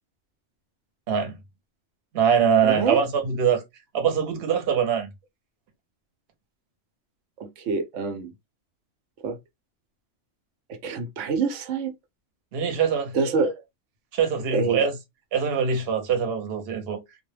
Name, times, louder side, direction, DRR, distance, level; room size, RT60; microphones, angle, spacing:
voice 1, 1.1-1.4 2.1-3.6 3.9-5.1 12.5-13.2 14.1-14.9 15.3-17.0, right 7 dB, 60° right, 0.9 m, -23 dB
voice 2, 2.6-3.0 7.4-8.3 9.2-9.4 10.7-11.9 13.1-13.6 14.5-14.8, right 4 dB, 90° right, 0.9 m, -26 dB
2.2 x 2.1 x 3.0 m
omnidirectional pair, 1.2 m